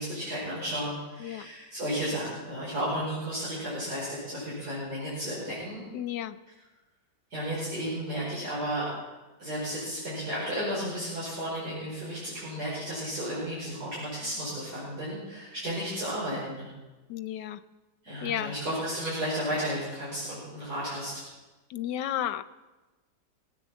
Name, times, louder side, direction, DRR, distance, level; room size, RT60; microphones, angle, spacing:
voice 1, 0.0-5.8 7.3-8.9 9.4-16.7 18.0-21.2, equal, 60° right, -9 dB, 5.7 m, -33 dB
voice 2, 5.9-6.4 17.1-17.6 18.2-18.5 21.7-22.4, left 11 dB, 80° left, 13 dB, 1.3 m, -32 dB
21.5 x 8.9 x 7.2 m, 1.2 s
omnidirectional pair, 1.9 m